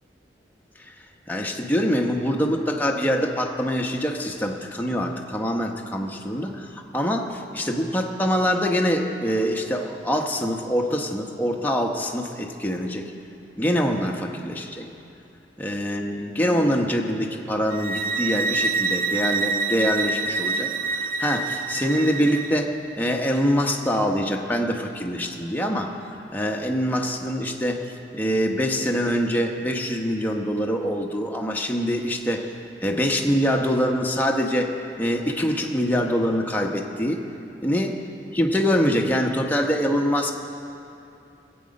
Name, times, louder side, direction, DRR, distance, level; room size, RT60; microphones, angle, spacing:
voice 1, 1.3-13.1 13.6-14.9 15.6-32.5 32.8-37.2 37.6-37.9 38.3-40.3, equal, 10° left, 1 dB, 0.9 m, -24 dB
sound 1, 17.7-22.6, right 4 dB, 50° right, 0.6 m, -26 dB
19.5 x 8.7 x 5.3 m, 2.7 s
head